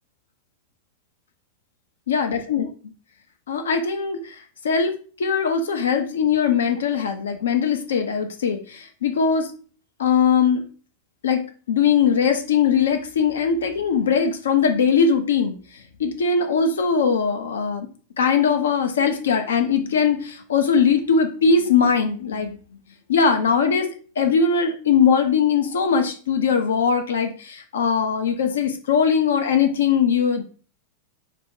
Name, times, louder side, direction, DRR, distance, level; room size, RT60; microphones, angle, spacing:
voice 1, 2.1-2.6 3.5-4.3 4.6-4.9 5.2-9.5 10.0-10.6 11.2-15.6 16.0-17.9 18.2-22.6 23.1-23.9 24.2-30.4, left 6 dB, 65° left, 7 dB, 0.5 m, -20 dB
4.8 x 2.2 x 3.6 m, 0.40 s
figure-of-eight pair, 90°, 0 cm